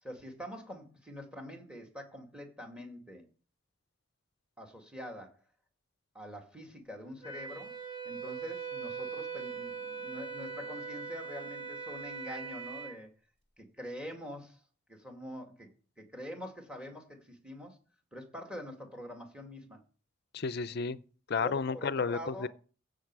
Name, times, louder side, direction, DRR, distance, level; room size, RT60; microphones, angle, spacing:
voice 1, 0.0-3.3 4.6-5.4 6.1-7.7 8.0-13.1 13.6-14.6 14.9-15.7 16.0-17.8 18.1-19.8 21.4-22.5, equal, 5° right, 2.3 m, -45 dB
Wind instrument woodwind instrument, 7.2-12.9, right 5 dB, 30° right, 2.5 m, -41 dB
voice 2, 20.3-21.0 21.3-22.5, left 5 dB, 50° left, 0.5 m, -32 dB
16.0 x 6.5 x 4.8 m
head